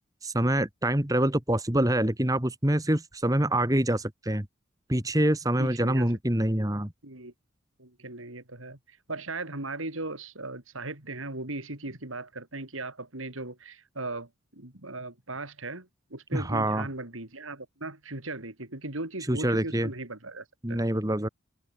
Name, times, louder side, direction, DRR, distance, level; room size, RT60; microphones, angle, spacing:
voice 1, 0.2-4.5 4.9-6.9 16.3-16.9 19.3-19.9 20.6-21.3, right 1 dB, 15° right, 1.8 m, -25 dB
voice 2, 5.6-6.1 7.0-7.3 7.8-8.8 9.1-20.8, right 2 dB, 85° right, 4.2 m, -38 dB
head